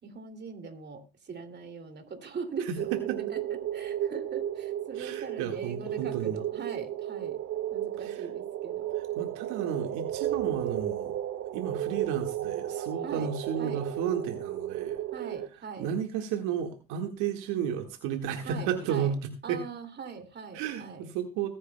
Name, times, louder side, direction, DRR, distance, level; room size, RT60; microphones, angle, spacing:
voice 1, 0.0-7.4 7.7-8.9 13.0-13.3 13.6-13.8 15.1-15.9 18.4-19.1 19.4-21.1, right 5 dB, 35° right, 7 dB, 2.7 m, -41 dB
voice 2, 2.6-3.2 5.0-6.4 8.0-8.2 9.0-11.1 11.5-15.0 15.8-19.6 20.5-21.5, right 8 dB, 70° right, 5 dB, 1.9 m, -33 dB
sound 1, 2.8-15.5, right 12 dB, 50° right, 2.0 m, -33 dB
21.5 x 9.9 x 2.3 m, 0.27 s
supercardioid pair, 85°, 32 cm